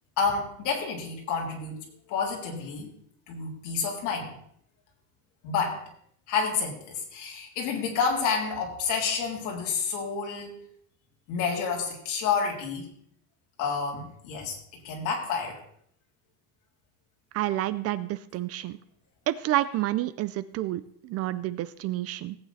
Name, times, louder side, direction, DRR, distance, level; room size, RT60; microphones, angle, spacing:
voice 1, 0.2-1.8 2.1-2.9 3.3-4.4 5.4-5.8 6.3-10.6 11.3-12.9 13.6-15.6, left 5 dB, 60° left, 0 dB, 3.5 m, -29 dB
voice 2, 17.3-18.8 19.3-22.4, right 14 dB, 45° right, 15 dB, 0.5 m, -29 dB
17.0 x 8.9 x 4.1 m, 0.67 s
cardioid pair, 165°, 35 cm